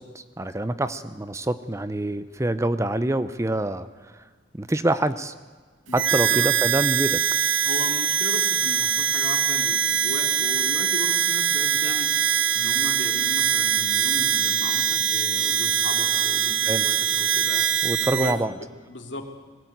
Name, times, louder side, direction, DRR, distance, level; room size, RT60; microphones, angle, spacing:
voice 1, 0.0-3.9 4.6-5.3 5.9-7.2 16.7-16.8 17.8-18.5, right 1 dB, 15° right, 13 dB, 0.7 m, -26 dB
voice 2, 5.9-6.5 7.6-12.1 12.5-17.7 18.2-19.2, left 2 dB, 70° left, 3 dB, 2.9 m, -36 dB
Harmonica, 5.9-18.4, right 10 dB, 90° right, 0.9 m, -23 dB
21.0 x 17.0 x 9.4 m, 1.4 s
head